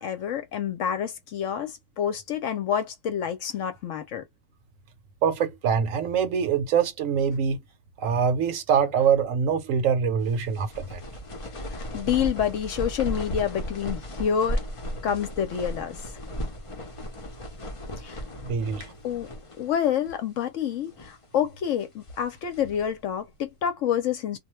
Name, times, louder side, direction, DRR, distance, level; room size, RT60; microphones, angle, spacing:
voice 1, 0.0-4.2 11.7-14.6 15.0-16.0 18.0-18.2 19.0-19.3 19.6-24.4, left 9 dB, 65° left, 0.9 m, -28 dB
voice 2, 5.2-7.6 8.0-11.0 18.4-18.9, right 7 dB, 70° right, 0.9 m, -24 dB
sound 1, 10.3-19.8 20.0-20.2 20.8-21.3 21.8-22.9, equal, 45° left, 0.4 m, -35 dB
2.3 x 2.2 x 3.0 m
omnidirectional pair, 1.5 m